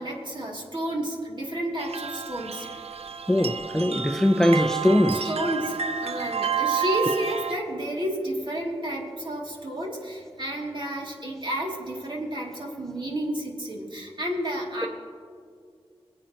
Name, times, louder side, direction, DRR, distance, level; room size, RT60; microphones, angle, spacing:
voice 1, 0.0-2.7 5.1-14.9, equal, 50° right, 2.8 m, -31 dB
sound 1, 1.8-7.5, right 7 dB, 75° right, 0.6 m, -30 dB
voice 2, 3.3-5.3, left 1 dB, 5° left, 0.6 m, -21 dB
23.0 x 8.5 x 2.9 m
cardioid pair, 40°, 11 cm